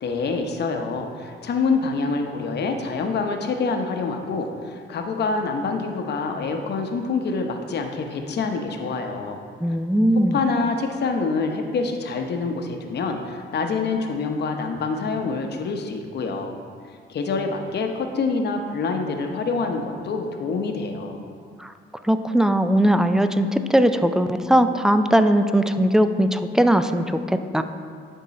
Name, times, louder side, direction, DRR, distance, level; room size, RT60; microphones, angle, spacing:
voice 1, 0.0-9.4 10.1-16.6 17.1-21.2, left 4 dB, 55° left, 4 dB, 0.8 m, -26 dB
voice 2, 9.6-10.4 21.6-21.7 22.0-27.6, right 1 dB, 5° right, 9 dB, 0.3 m, -19 dB
11.0 x 3.7 x 4.2 m, 2.1 s
cardioid pair, 90°, 20 cm